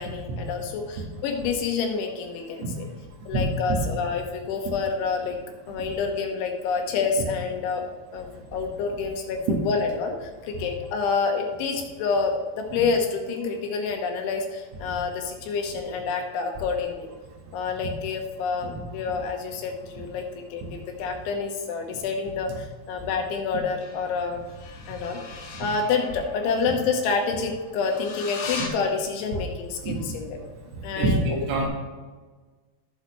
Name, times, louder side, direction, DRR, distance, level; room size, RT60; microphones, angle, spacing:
voice 1, 0.0-2.9 3.3-5.4 5.7-7.8 8.1-17.1 17.5-24.4 24.9-30.4 30.8-31.2, left 5 dB, 75° left, 3 dB, 3.4 m, -28 dB
sound 1, 18.4-21.4 23.7-28.7, left 5 dB, 90° left, 4.4 m, -42 dB
voice 2, 30.9-31.7, right 2 dB, 80° right, 0 dB, 4.3 m, -24 dB
18.5 x 6.5 x 3.2 m, 1.4 s
omnidirectional pair, 5.8 m